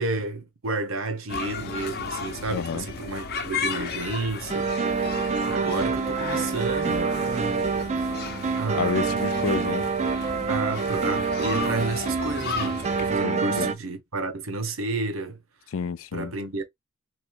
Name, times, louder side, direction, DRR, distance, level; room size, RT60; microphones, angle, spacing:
voice 1, 0.0-7.6 8.0-8.2 8.6-9.2 10.5-15.4 16.1-16.6, right 3 dB, 85° right, 1.0 m, -31 dB
sound 1, 1.3-13.2, left 4 dB, 50° left, 0.7 m, -34 dB
voice 2, 2.5-2.9 8.7-9.9 13.2-13.7 15.7-16.3, left 6 dB, 85° left, 0.4 m, -29 dB
sound 2, 4.5-13.7, right 5 dB, 35° right, 0.4 m, -27 dB
3.9 x 3.1 x 2.4 m
head